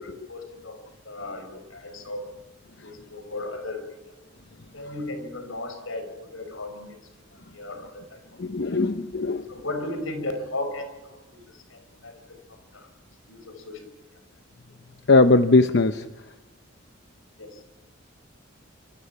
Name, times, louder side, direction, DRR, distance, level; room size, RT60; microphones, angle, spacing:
voice 1, 0.0-2.3 2.8-3.9 4.7-7.0 7.5-8.2 8.7-8.8 9.5-12.4 12.7-12.9 13.3-13.9 17.4-17.6, left 2 dB, 80° left, 8 dB, 5.2 m, -36 dB
voice 2, 8.4-9.4 15.1-16.0, left 3 dB, 55° left, 9 dB, 0.8 m, -19 dB
27.5 x 26.5 x 5.8 m, 0.96 s
head